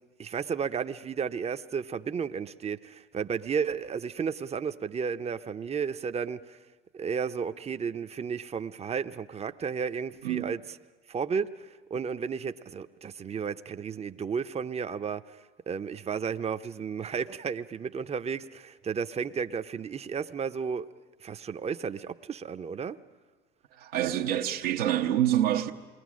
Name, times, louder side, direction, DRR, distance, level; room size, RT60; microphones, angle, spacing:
voice 1, 0.2-6.6 6.9-10.6 11.1-20.9 21.2-23.0, right 6 dB, 20° right, 0.7 m, -33 dB
voice 2, 10.2-10.5 23.8-25.7, right 11 dB, 80° right, 1.0 m, -26 dB
27.5 x 21.0 x 6.3 m
hypercardioid pair, 80°, 29 cm